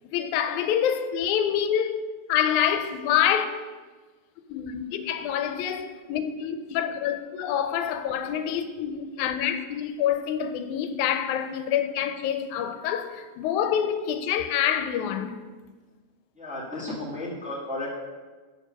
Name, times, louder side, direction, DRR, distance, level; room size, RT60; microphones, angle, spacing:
voice 1, 0.1-3.5 4.5-15.4, left 9 dB, 90° left, 2.0 m, -26 dB
voice 2, 16.3-17.9, left 2 dB, 5° right, 1.5 m, -33 dB
7.4 x 6.8 x 5.4 m
omnidirectional pair, 3.4 m